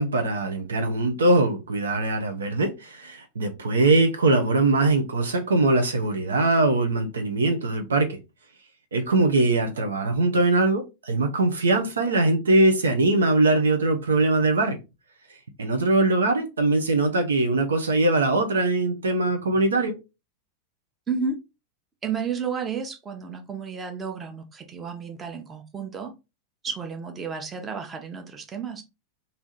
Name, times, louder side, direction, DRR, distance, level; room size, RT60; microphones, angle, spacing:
voice 1, 0.0-8.2 8.9-14.8 15.3-20.0, right 2 dB, 70° right, 0.7 m, -22 dB
voice 2, 21.1-21.4 22.0-26.1 26.6-28.8, right 5 dB, 20° right, 0.9 m, -32 dB
3.4 x 2.7 x 4.0 m
figure-of-eight pair, 90°, 0 cm